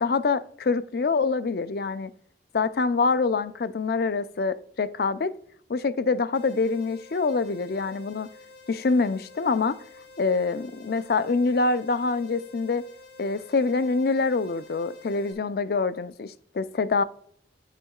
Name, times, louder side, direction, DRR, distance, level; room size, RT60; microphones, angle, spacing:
voice 1, 0.0-2.1 2.5-5.3 5.7-8.3 8.7-9.8 10.2-12.8 13.2-17.0, left 4 dB, 55° left, 0.4 m, -25 dB
sound 1, 6.3-15.3, left 3 dB, 75° left, 2.9 m, -50 dB
10.0 x 8.2 x 2.3 m
head